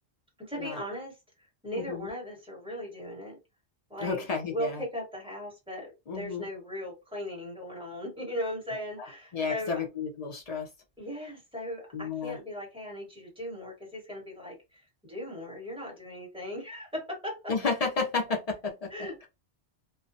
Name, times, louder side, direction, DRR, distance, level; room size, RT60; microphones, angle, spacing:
voice 1, 0.4-1.1 1.6-3.4 3.9-9.8 11.0-17.5 18.9-19.3, equal, 5° right, 1.2 m, -38 dB
voice 2, 1.8-2.1 4.0-4.8 6.1-6.5 9.3-10.7 11.9-12.4 17.5-19.1, left 4 dB, 40° left, 0.6 m, -32 dB
2.3 x 2.2 x 2.6 m
omnidirectional pair, 1.2 m